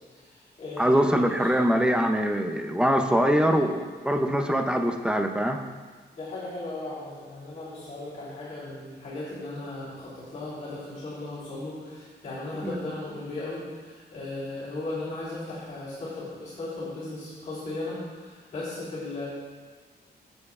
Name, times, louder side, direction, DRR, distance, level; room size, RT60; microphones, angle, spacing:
voice 1, 0.1-1.5 3.2-3.6 6.1-19.3, left 2 dB, 45° left, -9 dB, 3.0 m, -37 dB
voice 2, 0.8-5.6 12.6-12.8, equal, 5° right, 4 dB, 0.5 m, -23 dB
14.5 x 7.8 x 2.4 m, 1.5 s
wide cardioid pair, 170°, 18 cm